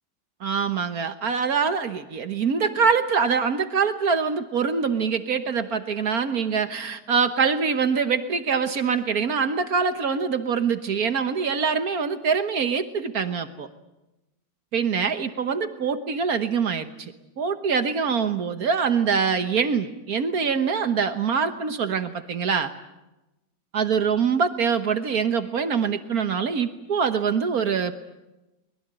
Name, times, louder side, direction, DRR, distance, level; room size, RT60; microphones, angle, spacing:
voice 1, 0.4-13.7 14.7-22.7 23.7-27.9, right 6 dB, 60° right, 9 dB, 1.6 m, -24 dB
24.0 x 21.5 x 9.0 m, 0.99 s
omnidirectional pair, 1.9 m